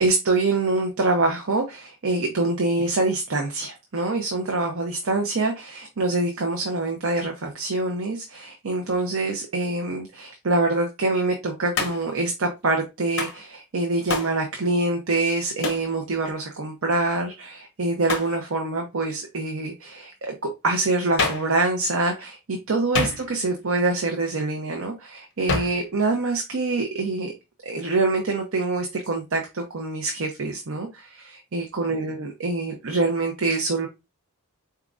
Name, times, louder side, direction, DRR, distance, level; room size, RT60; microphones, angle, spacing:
voice 1, 0.0-27.3 27.6-33.9, right 2 dB, 60° right, 2 dB, 0.8 m, -25 dB
Hands, 11.7-12.2 13.2-13.4 14.1-14.4 15.6-15.9 18.1-18.4 21.2-21.5 22.9-23.5 25.5-25.8, left 3 dB, 55° left, 1.0 m, -27 dB
4.3 x 3.6 x 2.5 m, 0.24 s
head